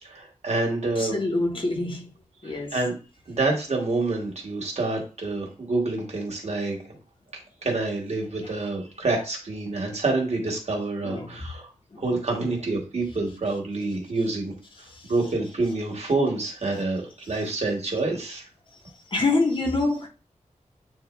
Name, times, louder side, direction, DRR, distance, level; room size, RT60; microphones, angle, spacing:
voice 1, 0.0-1.2 2.4-2.9 3.3-7.0 7.6-11.7 12.0-14.5 15.0-18.5, right 2 dB, 60° right, 2.3 m, -27 dB
voice 2, 1.0-2.0 2.4-2.7 11.0-11.3 11.9-12.0 14.9-15.0 19.1-20.1, left 2 dB, 40° left, 1.6 m, -25 dB
9.0 x 3.0 x 3.4 m
wide cardioid pair, 130°, 13 cm